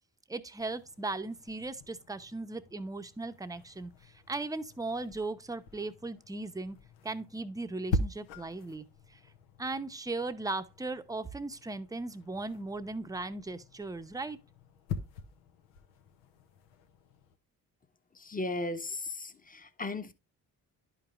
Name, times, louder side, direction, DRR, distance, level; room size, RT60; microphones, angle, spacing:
voice 1, 0.3-6.8 7.0-8.8 9.6-14.4, right 3 dB, 10° right, 0.7 m, -37 dB
sound 1, 0.6-17.4, left 2 dB, 90° left, 0.8 m, -43 dB
voice 2, 18.2-20.1, left 2 dB, 20° left, 0.9 m, -36 dB
11.0 x 5.0 x 2.4 m
hypercardioid pair, 45°, 44 cm